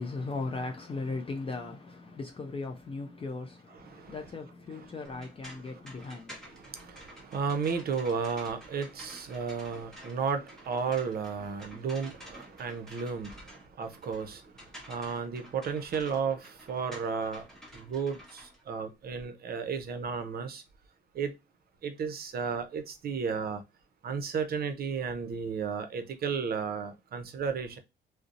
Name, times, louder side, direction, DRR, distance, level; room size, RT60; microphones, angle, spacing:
voice 1, 0.0-7.0, left 3 dB, 30° left, 0.4 m, -38 dB
voice 2, 3.7-4.3 4.7-4.9 5.7-6.2 6.4-20.6 21.1-21.3 21.8-23.6 24.0-27.8, right 6 dB, 50° right, 0.6 m, -34 dB
sound 1, 5.0-19.2, equal, 5° left, 0.9 m, -51 dB
2.6 x 2.0 x 2.5 m
cardioid pair, 90°, 20 cm